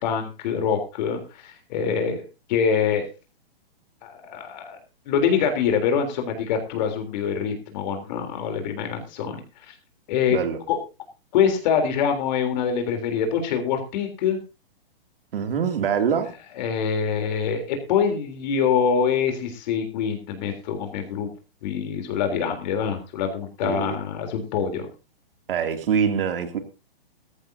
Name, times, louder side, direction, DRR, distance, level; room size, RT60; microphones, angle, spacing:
voice 1, 0.0-2.2 2.5-3.1 4.0-4.8 5.1-9.4 9.7-9.8 10.1-10.4 10.7-10.8 11.3-14.4 16.6-21.3 21.6-24.9, left 7 dB, 45° left, 3.5 m, -25 dB
voice 2, 15.3-16.3 23.6-24.0 25.5-26.6, right 7 dB, 65° right, 2.7 m, -24 dB
17.5 x 14.5 x 2.8 m
hypercardioid pair, 135°, 30 cm